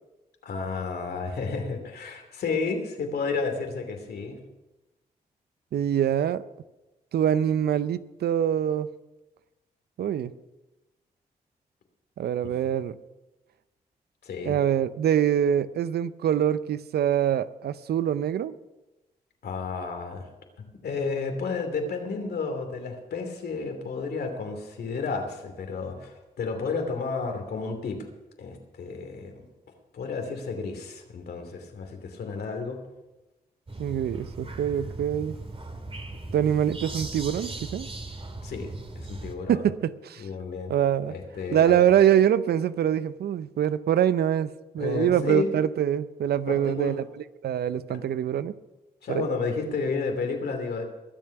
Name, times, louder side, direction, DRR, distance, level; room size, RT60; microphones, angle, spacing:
voice 1, 0.4-4.4 14.2-14.6 19.4-20.2 20.6-28.0 28.4-29.4 29.9-32.8 38.4-38.7 38.9-39.7 40.2-40.7 41.1-41.9 44.8-45.5 46.5-46.9 47.9-48.0 49.0-50.8, left 4 dB, 75° left, 4 dB, 2.8 m, -31 dB
voice 2, 5.7-6.4 7.1-8.9 10.0-10.3 12.2-12.9 14.4-18.5 33.8-35.4 36.3-37.9 39.5-40.3 40.7-41.1 41.5-47.1 47.4-48.5 49.1-49.3, right 10 dB, 75° right, 15 dB, 0.7 m, -24 dB
sound 1, 33.7-39.4, right 2 dB, 35° right, 2.4 m, -38 dB
22.5 x 7.6 x 5.9 m, 1.0 s
supercardioid pair, 45°, 17 cm